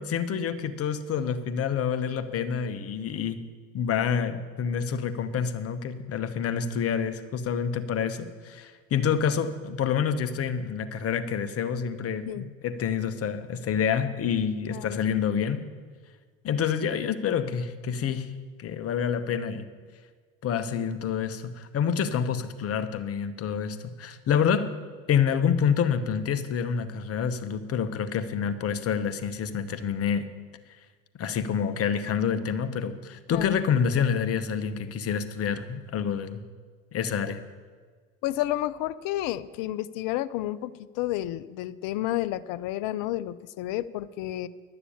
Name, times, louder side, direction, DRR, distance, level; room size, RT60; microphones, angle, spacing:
voice 1, 0.0-3.5 3.7-15.6 16.4-18.3 18.6-19.7 20.4-24.7 25.1-30.3 31.2-36.4 36.9-37.4, left 7 dB, 35° left, 10 dB, 0.9 m, -27 dB
voice 2, 38.2-40.7 41.0-44.5, left 14 dB, 50° left, 16 dB, 0.6 m, -30 dB
11.5 x 6.9 x 8.6 m, 1.5 s
hypercardioid pair, 95°, 41 cm